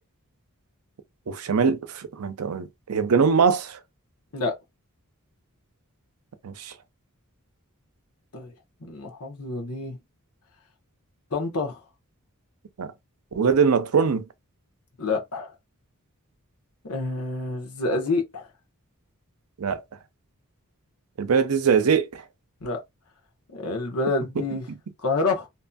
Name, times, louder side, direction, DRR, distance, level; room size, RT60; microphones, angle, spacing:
voice 1, 1.3-3.8 6.4-6.7 12.8-12.9 13.3-14.2 19.6-19.8 21.2-22.2, right 6 dB, 75° right, 0.5 m, -22 dB
voice 2, 8.8-10.0 11.3-11.8 15.0-15.5 16.8-18.5 22.6-22.8 23.5-24.7 25.0-25.5, left 3 dB, 80° left, 1.0 m, -28 dB
2.9 x 2.6 x 2.2 m
head